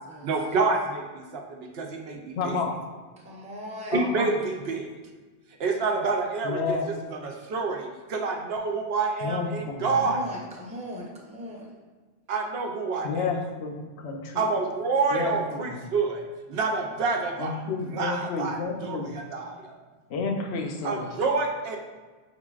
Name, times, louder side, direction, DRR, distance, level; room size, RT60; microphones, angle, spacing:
voice 1, 0.2-2.6 3.9-4.9 5.6-6.8 7.1-10.2 12.3-13.3 14.3-16.2 16.5-17.6 17.9-19.8 20.8-21.8, right 4 dB, 75° right, 2 dB, 0.8 m, -28 dB
voice 2, 2.3-2.7 3.9-4.3 6.4-6.9 9.2-9.9 13.0-14.4 15.1-15.7 17.4-19.1 20.1-21.1, left 4 dB, 90° left, 2 dB, 0.9 m, -30 dB
voice 3, 3.2-4.1 9.9-11.8, equal, 10° right, -2 dB, 0.5 m, -39 dB
4.7 x 3.7 x 2.3 m, 1.4 s
omnidirectional pair, 1.1 m